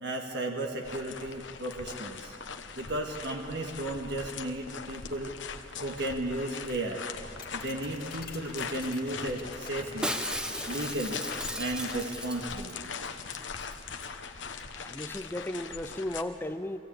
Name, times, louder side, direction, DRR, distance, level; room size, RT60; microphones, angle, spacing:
voice 1, 0.0-2.3 2.8-5.3 5.8-7.1 7.5-10.1 10.7-11.2 11.6-12.8, right 1 dB, 65° right, 2 dB, 1.6 m, -34 dB
sound 1, 0.8-16.2, left 5 dB, 85° left, 1.1 m, -41 dB
sound 2, 7.2-12.4, left 4 dB, 55° left, 2.1 m, -46 dB
Shatter, 10.0-12.8 13.1-13.2 13.3-13.7 14.0-14.1, equal, 5° right, 0.9 m, -36 dB
voice 2, 14.7-16.8, left 1 dB, 10° left, 11 dB, 0.5 m, -35 dB
24.0 x 15.5 x 8.6 m, 2.8 s
head